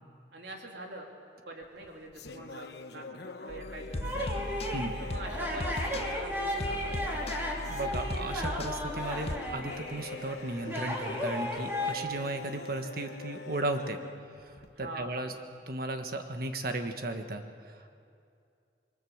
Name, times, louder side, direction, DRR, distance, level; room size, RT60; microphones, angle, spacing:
voice 1, 0.3-1.1 1.4-4.4 5.0-7.1 14.8-15.1, right 1 dB, 75° right, 1 dB, 3.4 m, -44 dB
sound 1, 1.6-15.1, left 3 dB, 65° left, 1.1 m, -45 dB
sound 2, 3.5-9.4, left 1 dB, 35° left, 0.8 m, -38 dB
sound 3, 4.0-11.9, left 1 dB, 10° right, 3.4 m, -35 dB
voice 2, 7.7-14.0 14.8-15.3 15.7-17.4, right 2 dB, 55° right, 6 dB, 1.5 m, -35 dB
26.5 x 22.5 x 7.3 m, 2.4 s
head